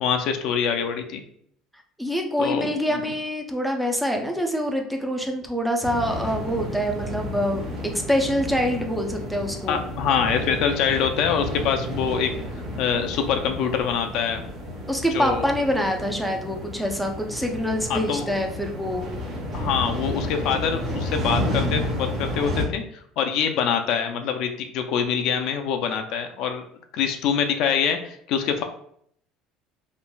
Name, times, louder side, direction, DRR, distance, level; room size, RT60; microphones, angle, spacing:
voice 1, 0.0-1.2 2.4-3.0 9.7-12.3 12.8-14.4 15.1-15.4 17.9-18.3 19.5-22.8 23.2-26.6 26.9-28.6, left 7 dB, 65° left, 6 dB, 0.3 m, -25 dB
voice 2, 2.0-9.8 14.9-19.1, equal, 5° right, 2 dB, 0.4 m, -25 dB
sound 1, 5.8-22.6, equal, 35° right, 1.0 m, -31 dB
3.0 x 2.4 x 2.2 m, 0.66 s
cardioid pair, 125°, 0 cm